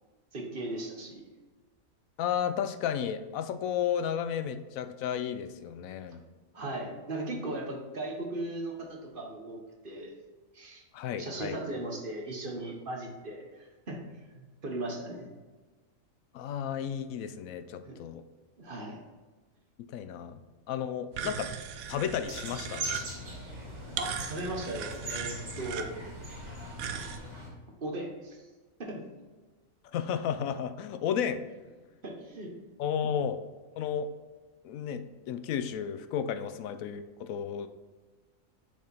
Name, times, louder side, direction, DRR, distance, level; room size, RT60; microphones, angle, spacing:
voice 1, 0.3-1.2 6.5-10.1 10.5-10.8 11.2-14.0 14.3-15.3 17.8-18.0 18.6-19.0 24.0-25.9 26.9-27.0 27.8-28.4 28.8-29.0 32.0-32.5, right 2 dB, 40° right, 1 dB, 1.2 m, -37 dB
voice 2, 2.2-6.2 10.9-11.6 16.3-18.2 19.8-21.5 21.9-22.9 29.9-31.4 32.8-33.4 33.8-34.1 34.6-37.7, left 8 dB, 85° left, 10 dB, 1.0 m, -33 dB
sound 1, 21.1-27.2, right 8 dB, 85° right, 1.1 m, -39 dB
sound 2, 22.2-27.5, equal, 55° right, 2.5 m, -41 dB
6.8 x 5.0 x 4.3 m, 1.3 s
omnidirectional pair, 1.4 m